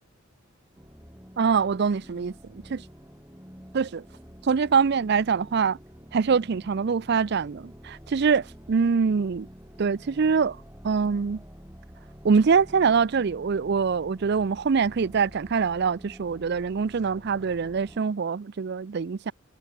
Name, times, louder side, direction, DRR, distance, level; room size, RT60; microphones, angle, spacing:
sound 1, 0.7-18.0, equal, 10° right, 7.3 m, -48 dB
voice 1, 1.4-2.8 3.7-4.0 4.4-5.8 6.1-9.5 9.8-10.6 10.8-11.4 12.2-19.3, right 5 dB, 55° right, 0.5 m, -24 dB
head